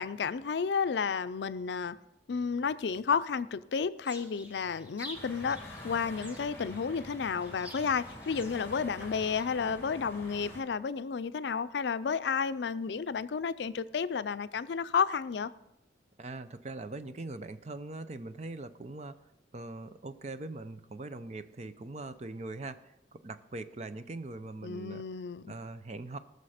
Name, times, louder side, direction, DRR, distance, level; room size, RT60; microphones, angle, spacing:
voice 1, 0.0-2.0 2.3-15.5 24.6-25.5, left 6 dB, 75° left, 14 dB, 0.4 m, -32 dB
sound 1, 4.0-9.6, equal, 10° right, 1.5 m, -50 dB
sound 2, 5.1-10.6, left 1 dB, 15° left, 2.1 m, -46 dB
voice 2, 16.2-19.1 19.5-25.0 25.5-26.2, right 2 dB, 40° right, 11 dB, 0.6 m, -41 dB
18.5 x 6.6 x 5.0 m, 0.91 s
head